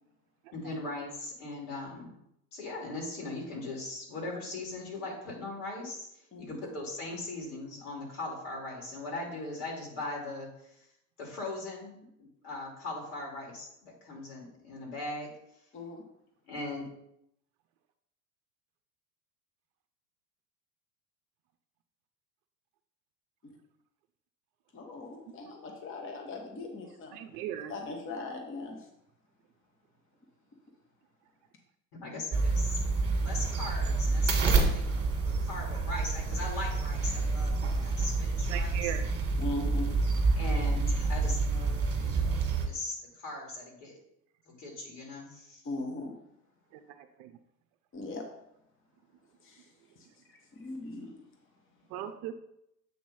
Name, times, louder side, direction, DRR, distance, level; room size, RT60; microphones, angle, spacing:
voice 1, 0.5-2.2 2.5-10.8 11.2-15.3 16.5-16.9 31.9-32.8 33.2-38.9 40.4-44.0 44.5-45.6, left 2 dB, 60° left, -1 dB, 2.8 m, -40 dB
voice 2, 24.7-27.1 27.7-28.8 39.4-40.0 45.6-46.2 47.9-48.3 49.4-49.6 50.6-51.1, left 2 dB, 25° left, 2 dB, 1.2 m, -39 dB
voice 3, 27.1-27.7 38.5-39.0 46.7-47.3 51.9-52.3, right 11 dB, 45° right, 8 dB, 0.6 m, -38 dB
sound 1, 32.3-42.7, right 3 dB, 25° right, 1.6 m, -28 dB
7.7 x 3.0 x 5.6 m, 0.79 s
hypercardioid pair, 90°, 50 cm